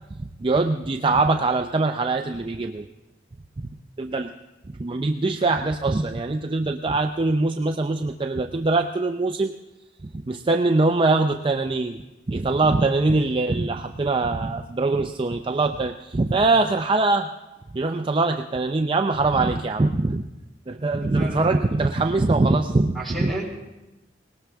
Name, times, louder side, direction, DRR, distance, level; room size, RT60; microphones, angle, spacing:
voice 1, 0.2-2.9 4.0-4.3 4.7-9.5 10.0-12.0 12.3-17.3 17.7-20.2 20.7-23.3, right 3 dB, 30° right, 5 dB, 0.5 m, -23 dB
voice 2, 21.0-21.6 22.9-23.5, right 1 dB, ahead, -2 dB, 3.9 m, -32 dB
19.5 x 18.5 x 3.5 m, 1.0 s
head